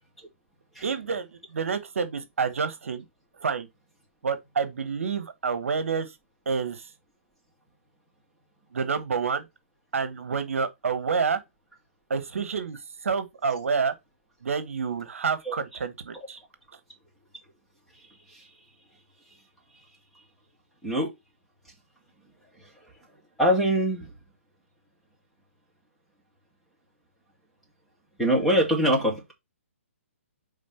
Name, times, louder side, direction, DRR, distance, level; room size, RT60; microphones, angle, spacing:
voice 1, 0.8-3.0 3.4-3.7 4.2-6.1 6.5-6.9 8.7-9.4 9.9-11.4 12.1-13.9 14.4-16.4, right 5 dB, 75° right, 1.1 m, -28 dB
voice 2, 23.4-24.1 28.2-29.3, equal, ahead, 2.5 m, -24 dB
5.3 x 3.7 x 5.5 m
hypercardioid pair, 140°, 7 cm